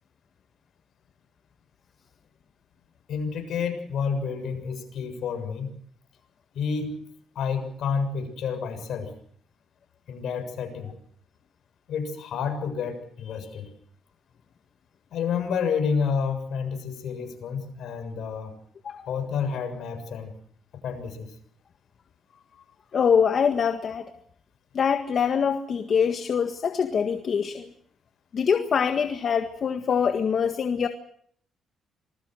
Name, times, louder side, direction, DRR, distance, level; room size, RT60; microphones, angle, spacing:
voice 1, 3.1-5.7 6.5-6.9 7.4-9.1 10.1-10.9 11.9-13.7 15.1-18.5 19.1-20.3 20.8-21.3, left 6 dB, 70° left, 6 dB, 7.1 m, -29 dB
voice 2, 22.9-24.1 24.7-27.7 28.3-30.9, left 7 dB, 50° left, 7 dB, 1.7 m, -24 dB
27.0 x 20.5 x 6.4 m, 0.63 s
cardioid pair, 90°, 0 cm